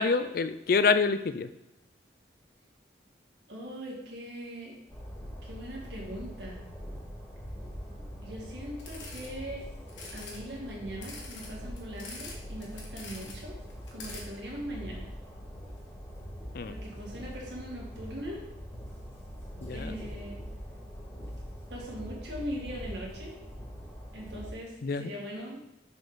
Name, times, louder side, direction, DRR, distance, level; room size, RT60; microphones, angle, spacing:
voice 1, 0.0-1.5 16.5-16.7 19.6-20.0 24.8-25.1, left 4 dB, 50° left, 12 dB, 0.4 m, -26 dB
voice 2, 3.5-4.8 5.4-6.6 8.2-9.6 10.1-13.5 13.9-15.1 16.7-18.4 19.7-20.4 21.7-23.3 24.1-25.8, equal, 70° right, -3 dB, 2.2 m, -40 dB
Train, 4.9-24.5, equal, 15° left, 1.4 m, -43 dB
sound 1, 8.8-9.3 9.9-10.4 11.0-12.3 12.6-13.4 13.7-14.2, left 3 dB, 85° left, 1.6 m, -44 dB
6.3 x 5.2 x 4.1 m, 0.89 s
head